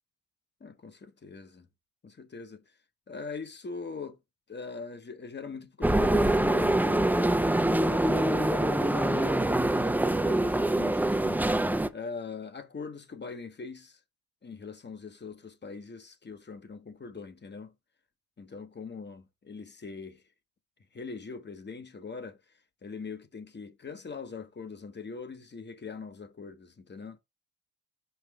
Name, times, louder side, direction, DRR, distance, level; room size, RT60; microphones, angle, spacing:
voice 1, 0.6-1.7 2.0-2.6 3.1-4.2 4.5-7.1 7.9-11.4 11.9-14.0 14.4-17.7 18.4-20.2 20.9-22.4 22.8-27.2, left 4 dB, 30° left, 1.0 m, -41 dB
sound 1, 5.8-11.9, right 1 dB, 5° right, 0.5 m, -25 dB
5.7 x 5.4 x 3.4 m
cardioid pair, 75°, 38 cm